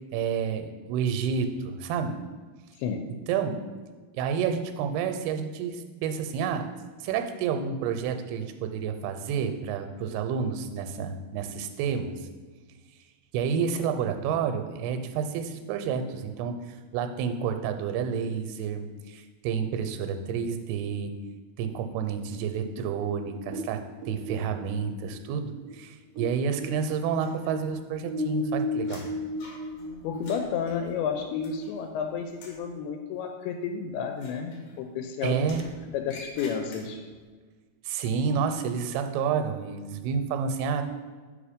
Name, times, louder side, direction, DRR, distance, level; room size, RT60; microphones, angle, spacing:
voice 1, 0.1-2.2 3.3-3.6 4.1-6.7 7.0-12.2 13.3-21.1 21.6-29.0 35.2-35.6 37.9-40.8, right 6 dB, 90° right, 8 dB, 2.6 m, -29 dB
voice 2, 2.8-3.1 30.0-35.5 35.8-37.0, left 6 dB, 85° left, 5 dB, 2.5 m, -31 dB
sound 1, 22.8-26.3 26.6-30.7, left 2 dB, 75° right, 1.5 m, -34 dB
sound 2, 27.2-27.9 28.2-32.0 32.3-32.7 34.1-35.0 35.4-37.2, left 2 dB, 70° left, 1.9 m, -49 dB
5.2 x 5.1 x 5.0 m, 1.4 s
omnidirectional pair, 4.5 m